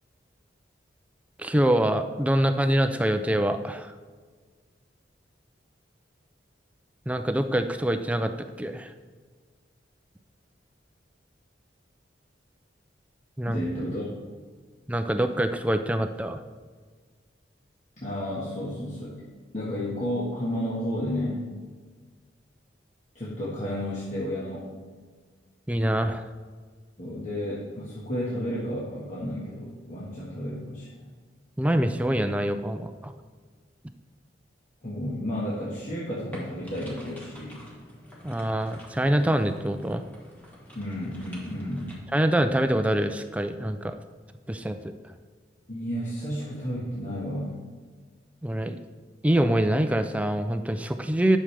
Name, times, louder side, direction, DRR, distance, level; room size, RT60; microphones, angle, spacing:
voice 1, 1.4-3.9 7.1-8.3 8.6-8.9 13.4-13.6 14.9-16.4 25.7-26.2 31.6-33.1 38.2-40.0 42.1-43.9 44.5-44.9 48.4-48.8 49.2-51.4, right 1 dB, 5° right, 8 dB, 0.4 m, -25 dB
voice 2, 13.5-14.1 18.0-19.3 19.5-21.5 23.1-24.7 27.0-31.1 34.8-37.6 40.7-42.0 45.7-47.6, equal, 40° left, -8 dB, 1.6 m, -32 dB
sound 1, 36.3-42.0, equal, 10° left, 1.6 m, -46 dB
11.0 x 6.4 x 3.3 m, 1.5 s
head